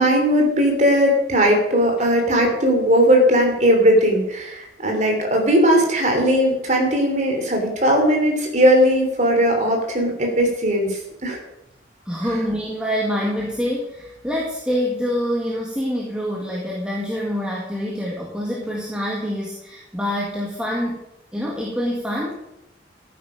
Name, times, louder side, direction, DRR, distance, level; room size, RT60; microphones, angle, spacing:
voice 1, 0.0-11.4, equal, 40° right, 2 dB, 3.3 m, -18 dB
voice 2, 12.1-21.0 21.3-22.4, equal, 5° right, -4 dB, 2.0 m, -26 dB
14.0 x 9.4 x 5.2 m, 0.89 s
head